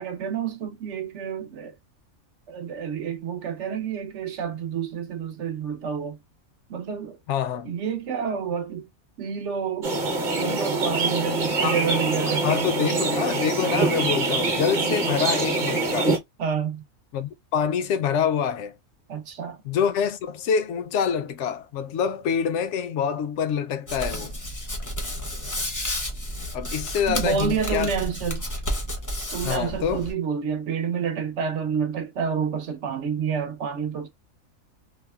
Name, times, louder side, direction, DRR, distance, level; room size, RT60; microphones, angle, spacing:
voice 1, 0.0-1.7 2.5-6.2 6.7-7.2 7.6-8.9 9.2-9.9 10.3-13.0 16.4-16.8 19.1-19.6 27.1-28.4 29.3-34.1, right 7 dB, 65° right, 0.9 m, -29 dB
voice 2, 7.3-7.7 11.6-11.8 12.4-16.2 17.1-18.7 19.6-24.3 26.5-27.9 29.4-30.1, left 7 dB, 65° left, 0.8 m, -26 dB
sound 1, 9.8-16.2, right 3 dB, 40° right, 1.0 m, -24 dB
Hands, 23.9-30.1, left 1 dB, 20° left, 0.5 m, -31 dB
3.4 x 2.0 x 2.2 m
omnidirectional pair, 1.5 m